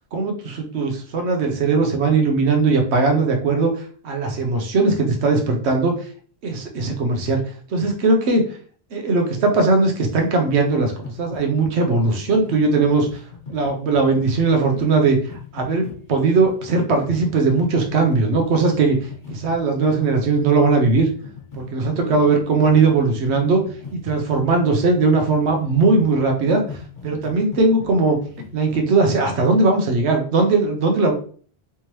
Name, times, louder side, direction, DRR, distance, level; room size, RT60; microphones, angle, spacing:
voice 1, 0.1-3.7 4.0-6.1 6.4-7.4 7.7-8.4 8.9-13.1 13.5-15.2 15.5-19.0 19.3-21.1 21.5-23.6 23.9-26.8 27.0-28.2 28.5-31.1, right 3 dB, 90° right, 3 dB, 1.0 m, -19 dB
sound 1, 10.1-28.8, left 5 dB, 50° left, 1.1 m, -39 dB
3.4 x 3.0 x 2.9 m, 0.44 s
omnidirectional pair, 1.1 m